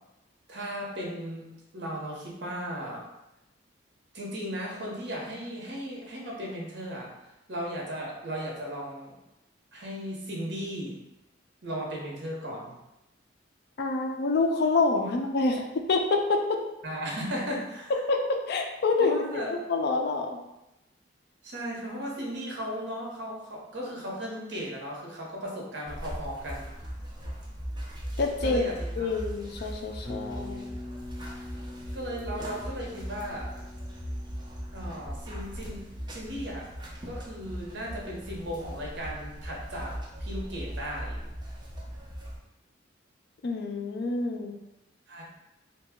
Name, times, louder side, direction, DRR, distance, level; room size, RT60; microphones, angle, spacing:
voice 1, 0.5-1.5 1.7-3.0 4.1-7.1 7.5-9.1 9.7-11.0 11.6-12.8 15.0-15.1 16.8-17.9 19.0-19.5 21.4-26.7 28.4-29.1 31.9-33.5 34.7-36.7 37.0-39.9 40.2-41.2 45.1-45.2, equal, 65° right, -2 dB, 0.9 m, -36 dB
voice 2, 13.8-16.4 18.1-20.4 28.2-28.6 29.0-30.7 43.4-44.6, left 3 dB, 60° left, 3 dB, 0.4 m, -27 dB
sound 1, 25.8-42.4, equal, 25° right, 0.5 m, -39 dB
Bass guitar, 30.0-38.1, left 2 dB, ahead, 1.5 m, -45 dB
2.9 x 2.2 x 3.5 m, 0.91 s
head